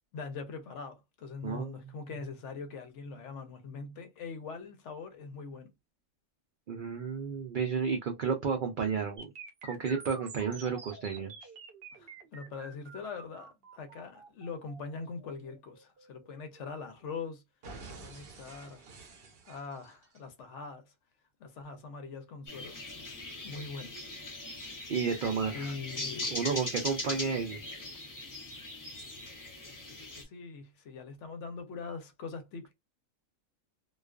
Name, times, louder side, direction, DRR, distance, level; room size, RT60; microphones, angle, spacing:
voice 1, 0.1-5.7 11.9-17.4 17.8-18.8 19.5-20.9 21.4-23.1 23.4-24.0 25.5-26.4 29.9-32.7, left 4 dB, 65° left, 0.8 m, -42 dB
voice 2, 6.7-9.3 9.6-11.5 24.9-25.7 26.3-27.6, right 6 dB, 75° right, 0.4 m, -32 dB
sound 1, 9.2-17.1 17.6-20.2, right 4 dB, 55° right, 0.8 m, -49 dB
sound 2, 22.5-30.2, left 2 dB, 25° left, 0.4 m, -40 dB
2.3 x 2.3 x 2.3 m
omnidirectional pair, 1.4 m